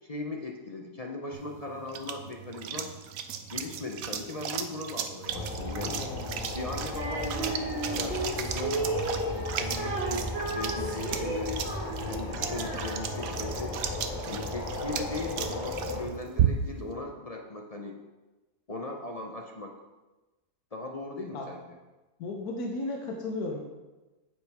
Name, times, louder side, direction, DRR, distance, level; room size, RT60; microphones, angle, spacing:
voice 1, 0.0-2.9 3.5-6.0 6.5-8.8 9.1-11.6 12.0-13.8 14.3-18.0 18.7-19.7 20.7-21.6, left 2 dB, 40° left, 1 dB, 0.5 m, -38 dB
sound 1, 1.3-16.9, right 9 dB, 70° right, 1.1 m, -35 dB
sound 2, 5.3-16.1, left 2 dB, 20° left, 3.2 m, -35 dB
voice 2, 5.9-6.5 21.3-21.4 22.2-23.6, left 2 dB, 75° left, 1 dB, 1.5 m, -35 dB
Female singing, 6.9-13.4, right 2 dB, 40° right, 1.8 m, -34 dB
9.4 x 8.5 x 3.5 m, 1.1 s
omnidirectional pair, 1.7 m